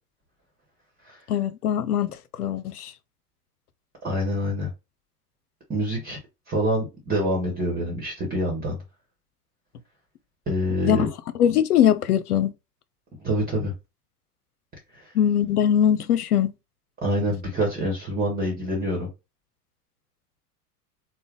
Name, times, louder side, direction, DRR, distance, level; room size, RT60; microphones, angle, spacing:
voice 1, 1.3-2.9 10.8-11.1 11.4-12.5 15.1-16.5, left 9 dB, 75° left, 0.6 m, -21 dB
voice 2, 4.0-4.7 5.7-6.2 6.5-8.8 10.5-11.1 13.2-13.7 14.9-15.0 17.0-19.1, equal, 20° right, 1.3 m, -26 dB
3.4 x 2.2 x 3.7 m
figure-of-eight pair, 85°, 46 cm